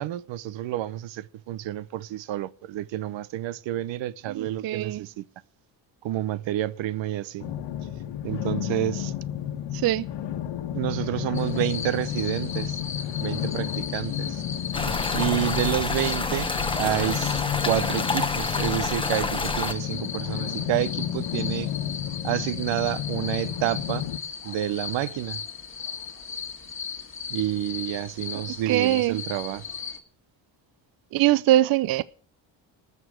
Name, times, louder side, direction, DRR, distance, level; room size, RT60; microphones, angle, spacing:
voice 1, 0.0-5.2 6.0-7.4 8.2-9.1 10.7-12.8 13.2-14.4 15.1-16.5 16.8-17.3 17.7-21.7 22.2-24.1 24.4-25.4 27.3-29.6, right 13 dB, 80° right, 0.8 m, -29 dB
voice 2, 4.3-5.0 9.7-10.0 28.7-29.2 31.1-32.0, right 15 dB, 55° right, 0.5 m, -22 dB
sound 1, 7.4-24.2, left 11 dB, 75° left, 1.3 m, -32 dB
sound 2, 11.3-30.0, left 6 dB, 30° left, 1.8 m, -37 dB
sound 3, 14.7-19.7, left 3 dB, 10° left, 0.9 m, -28 dB
19.0 x 6.9 x 6.3 m
cardioid pair, 145°, 44 cm